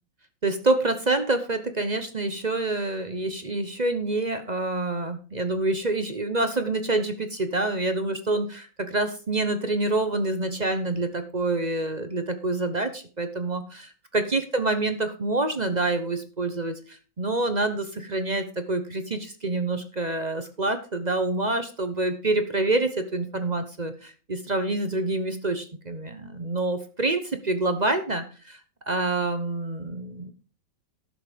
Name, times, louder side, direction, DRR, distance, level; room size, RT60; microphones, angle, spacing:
voice 1, 0.4-28.6 28.9-30.3, right 2 dB, 35° right, 9 dB, 0.7 m, -27 dB
12.0 x 6.8 x 5.2 m, 0.37 s
omnidirectional pair, 2.1 m